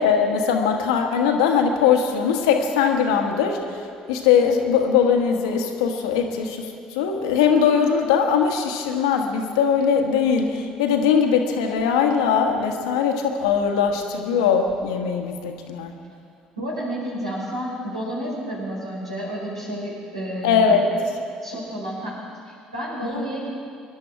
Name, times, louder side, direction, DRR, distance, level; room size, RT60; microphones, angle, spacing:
voice 1, 0.0-3.8 4.1-15.9 20.4-20.8 23.1-23.2, left 7 dB, 70° left, 3 dB, 1.5 m, -20 dB
voice 2, 16.6-21.0 21.4-22.2 22.4-23.5, right 1 dB, 85° right, -6 dB, 4.5 m, -31 dB
24.5 x 11.5 x 4.8 m, 2.3 s
figure-of-eight pair, 50°, 3 cm